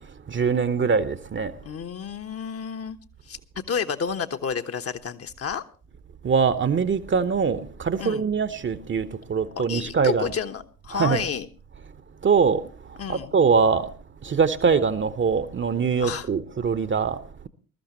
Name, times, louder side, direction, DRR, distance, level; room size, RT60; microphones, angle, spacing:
voice 1, 0.0-1.5 6.2-10.3 10.9-11.2 12.2-13.9 14.2-17.5, right 5 dB, 25° right, 1.0 m, -23 dB
voice 2, 1.6-3.0 3.3-3.4 3.7-5.6 8.0-8.2 9.6-11.5 13.0-13.3 16.0-16.3, left 6 dB, 35° left, 1.1 m, -30 dB
21.0 x 13.5 x 3.0 m
figure-of-eight pair, 50°, 44 cm